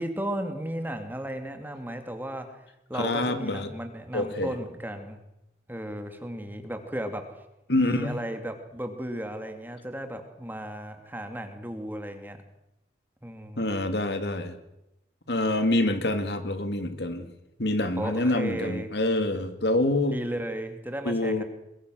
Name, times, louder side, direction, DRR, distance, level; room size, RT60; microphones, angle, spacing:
voice 1, 0.0-5.2 5.7-7.4 7.8-12.4 13.2-13.7 15.3-15.7 18.0-18.9 20.0-21.4, right 1 dB, 10° right, 6 dB, 2.4 m, -35 dB
voice 2, 2.9-3.7 4.1-4.6 7.7-8.2 13.6-14.6 15.3-17.3 17.6-20.2 21.0-21.4, left 1 dB, 70° left, 8 dB, 2.5 m, -26 dB
22.5 x 22.0 x 6.4 m, 0.90 s
head